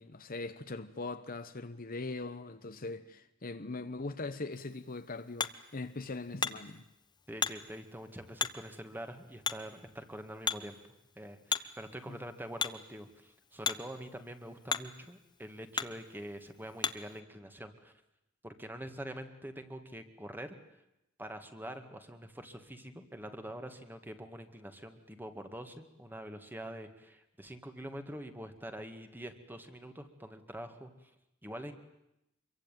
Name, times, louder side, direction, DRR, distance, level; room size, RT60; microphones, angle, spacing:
voice 1, 0.0-6.8 12.1-12.2, left 3 dB, 45° left, 1.1 m, -41 dB
Hammer, 4.5-17.2, left 5 dB, 20° left, 1.0 m, -40 dB
voice 2, 7.3-10.8 11.2-17.9 18.4-20.6 21.2-30.9 31.4-31.7, right 1 dB, 10° right, 2.1 m, -45 dB
25.5 x 23.0 x 9.2 m
head